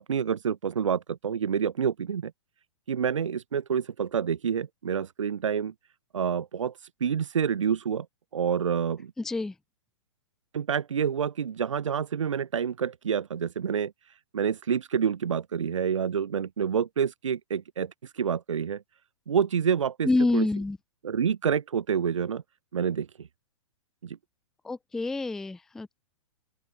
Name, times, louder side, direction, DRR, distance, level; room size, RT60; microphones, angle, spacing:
voice 1, 0.0-2.3 2.9-5.7 6.1-6.7 7.0-8.1 8.3-9.1 10.5-13.9 14.3-18.8 19.3-20.1 20.3-20.4 21.0-22.4 22.7-23.3 24.0-24.2, right 7 dB, 75° right, 0.5 m, -28 dB
voice 2, 9.2-9.6 20.0-20.8 24.6-26.0, left 2 dB, 5° left, 0.3 m, -27 dB
open air
figure-of-eight pair, 110°, 16 cm